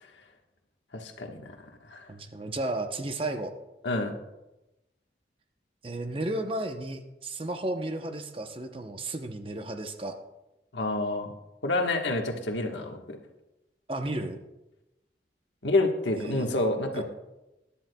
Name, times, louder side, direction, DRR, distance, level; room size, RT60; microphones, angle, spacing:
voice 1, 0.9-1.4 1.9-2.1 3.8-4.1 10.7-11.3 11.6-13.2 15.6-17.0, left 2 dB, 85° left, 2 dB, 1.4 m, -28 dB
voice 2, 2.1-3.5 5.8-10.2 13.9-14.4 16.2-16.5 16.9-17.0, right 2 dB, 30° right, 6 dB, 0.8 m, -33 dB
22.0 x 10.0 x 2.3 m, 0.99 s
head